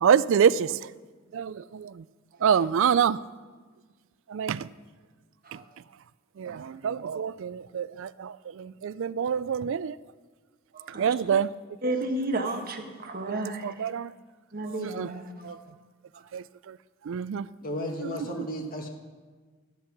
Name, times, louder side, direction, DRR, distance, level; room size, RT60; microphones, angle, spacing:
voice 1, 0.0-0.8 1.3-2.0 2.4-3.2 4.3-4.7 6.4-10.0 11.0-11.5 13.2-13.4 13.6-14.1 15.0-15.1 15.5-15.6 16.3-16.4 17.1-17.5, right 7 dB, 60° right, 0.3 m, -26 dB
voice 2, 10.7-11.1 11.8-13.9 14.5-15.6 16.1-16.2, right 2 dB, 45° right, 1.3 m, -33 dB
voice 3, 17.6-18.9, equal, 40° left, 1.6 m, -33 dB
13.0 x 10.5 x 6.0 m
head